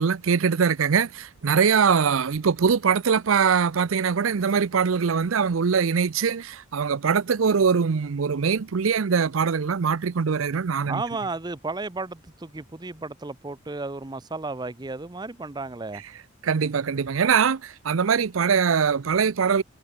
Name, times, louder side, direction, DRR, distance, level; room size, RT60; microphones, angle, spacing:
voice 1, 0.0-11.0 16.4-19.6, right 6 dB, 80° right, 0.6 m, -22 dB
voice 2, 10.9-16.0, right 3 dB, 20° right, 0.7 m, -33 dB
head